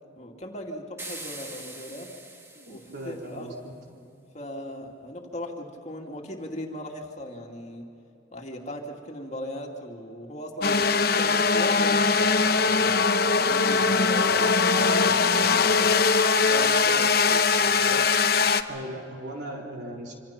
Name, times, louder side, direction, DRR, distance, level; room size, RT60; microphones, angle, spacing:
voice 1, 0.2-2.1 2.7-3.6 4.3-7.8 8.3-13.1 13.4-15.6 16.5-17.1, left 1 dB, 35° left, 1 dB, 2.4 m, -38 dB
sound 1, 1.0-3.4, right 2 dB, 15° right, 1.5 m, -42 dB
voice 2, 2.5-3.7 18.7-20.2, right 1 dB, 60° right, 0 dB, 4.1 m, -38 dB
sound 2, 10.6-18.6, left 4 dB, 50° left, 0.9 m, -21 dB
26.5 x 26.5 x 5.9 m, 2.7 s
head